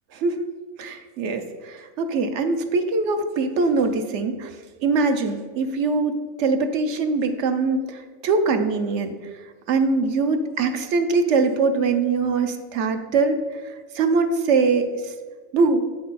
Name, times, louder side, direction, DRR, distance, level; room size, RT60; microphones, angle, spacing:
voice 1, 0.1-0.5 0.8-4.5 4.8-15.1 15.5-15.8, right 4 dB, 65° right, 7 dB, 1.0 m, -23 dB
8.4 x 6.1 x 4.1 m, 1.5 s
omnidirectional pair, 1.4 m